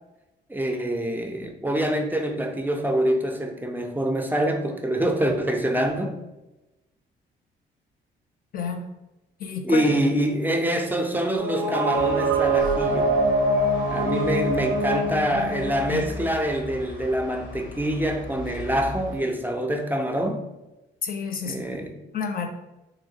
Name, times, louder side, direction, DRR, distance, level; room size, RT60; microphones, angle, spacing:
voice 1, 0.5-6.2 9.6-13.2 13.9-20.4 21.4-22.0, right 1 dB, 10° right, 0.4 m, -25 dB
voice 2, 9.4-10.0 15.1-16.1 21.0-21.6 22.1-22.5, left 5 dB, 50° left, 0.5 m, -30 dB
sound 1, 11.4-16.3, right 2 dB, 75° right, 0.5 m, -24 dB
sound 2, 11.9-19.2, left 2 dB, 90° left, 0.7 m, -38 dB
3.0 x 2.8 x 2.7 m
cardioid pair, 90°, 20 cm